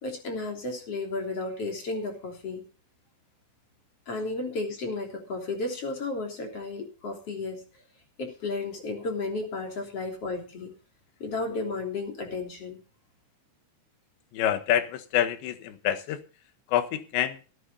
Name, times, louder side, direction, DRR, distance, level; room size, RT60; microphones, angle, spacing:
voice 1, 0.0-2.6 4.1-7.6 8.2-10.7 11.2-12.8, left 3 dB, 35° left, 2 dB, 3.7 m, -33 dB
voice 2, 14.3-16.2 16.7-17.4, left 10 dB, 70° left, 10 dB, 3.4 m, -27 dB
18.5 x 9.7 x 4.0 m, 0.36 s
omnidirectional pair, 5.7 m